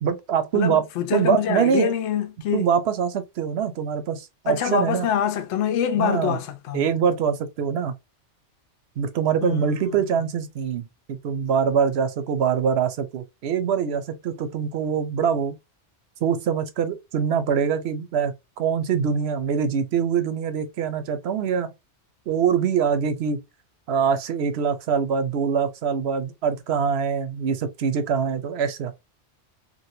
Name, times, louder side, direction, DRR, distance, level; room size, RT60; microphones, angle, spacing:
voice 1, 0.0-0.8 1.1-1.9 2.5-5.1 5.9-6.4 6.7-7.9 9.0-15.6 16.2-21.7 22.3-23.4 23.9-28.9, right 7 dB, 65° right, 0.8 m, -24 dB
voice 2, 0.5-2.7 4.5-6.9 9.4-10.1, left 8 dB, 75° left, 0.9 m, -25 dB
3.0 x 2.5 x 2.7 m
omnidirectional pair, 1.2 m